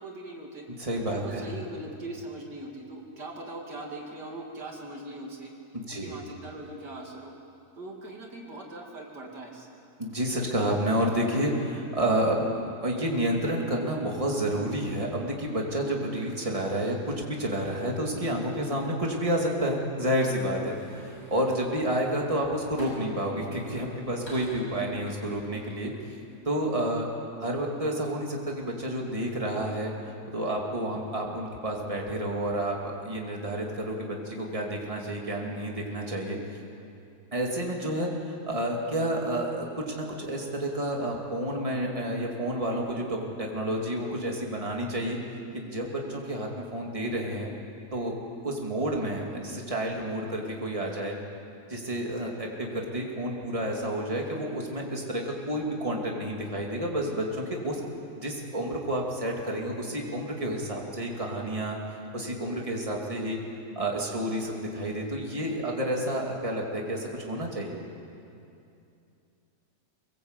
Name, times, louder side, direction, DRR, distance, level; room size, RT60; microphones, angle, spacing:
voice 1, 0.0-0.6 1.1-5.5 5.9-7.3 7.7-9.7, right 2 dB, 90° right, 0 dB, 3.5 m, -40 dB
voice 2, 0.8-1.5 5.7-6.1 10.0-25.9 26.4-27.1 27.4-36.4 37.3-45.2 45.5-47.5 47.9-48.1 48.4-51.1 51.7-57.8 58.2-61.8 62.1-63.4 63.8-67.7, right 1 dB, 20° right, -1 dB, 2.9 m, -30 dB
sound 1, 20.6-23.2 23.6-25.8 26.1-26.4, equal, 75° left, 8.0 m, -48 dB
24.5 x 21.0 x 8.3 m, 2.7 s
omnidirectional pair, 1.7 m